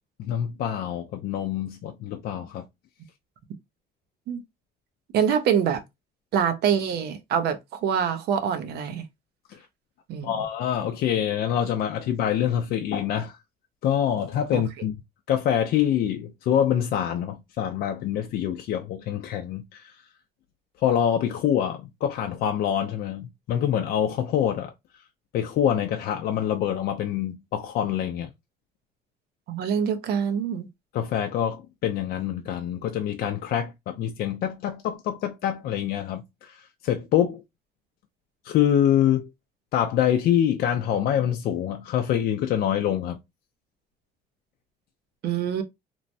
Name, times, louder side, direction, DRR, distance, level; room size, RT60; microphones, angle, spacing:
voice 1, 0.2-2.7 9.5-9.6 10.2-13.4 13.8-15.0 15.3-20.0 20.8-24.7 25.3-28.3 30.9-37.4 38.4-39.3 39.7-43.2, left 10 dB, 65° left, 0.4 m, -25 dB
voice 2, 5.1-5.8 6.3-9.0 10.1-10.4 14.5-14.6 29.5-30.7 45.2-45.6, right 8 dB, 75° right, 0.7 m, -25 dB
3.0 x 2.1 x 2.6 m
cardioid pair, 110°, 17 cm